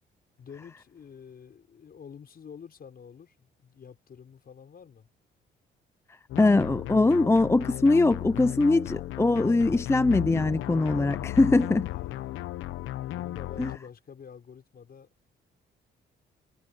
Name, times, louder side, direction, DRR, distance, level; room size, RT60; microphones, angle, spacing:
voice 1, 0.4-5.1 11.8-12.5 13.1-15.1, left 7 dB, 50° left, 6.2 m, -48 dB
sound 1, 6.3-13.8, left 15 dB, 90° left, 1.1 m, -35 dB
voice 2, 6.4-11.9 13.6-13.7, left 2 dB, 15° left, 0.6 m, -22 dB
cardioid pair, 90°, 20 cm